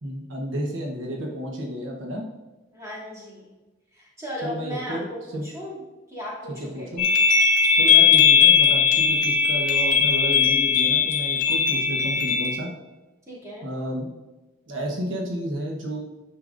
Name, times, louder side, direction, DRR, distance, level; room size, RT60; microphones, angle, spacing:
voice 1, 0.0-2.3 4.4-5.0 5.3-5.5 6.7-7.0 7.7-12.7 13.6-14.1 14.7-16.0, equal, 80° right, -1 dB, 1.2 m, -31 dB
voice 2, 2.7-3.5 3.9-5.8 6.1-6.9 13.3-13.7, equal, 15° right, -7 dB, 2.7 m, -36 dB
sound 1, 7.0-12.6, left 6 dB, 45° left, 0.9 m, -19 dB
9.6 x 6.7 x 2.6 m, 1.1 s
head